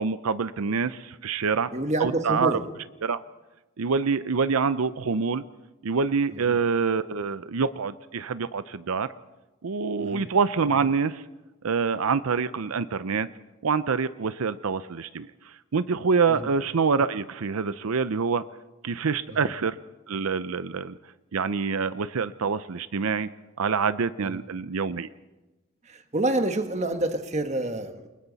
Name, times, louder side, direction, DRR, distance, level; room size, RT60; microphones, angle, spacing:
voice 1, 0.0-1.7 2.0-2.6 3.0-3.2 3.8-5.4 5.8-9.1 9.6-11.2 11.6-13.3 13.6-18.4 18.8-19.8 20.1-21.0 21.3-23.3 23.6-25.1, right 5 dB, 80° right, 14 dB, 0.6 m, -26 dB
voice 2, 1.7-2.7 6.3-6.6 10.0-10.3 16.3-16.5 19.3-19.5 24.2-24.4 25.8-28.1, right 1 dB, 30° right, 7 dB, 1.3 m, -28 dB
29.0 x 22.0 x 4.1 m, 1.1 s
head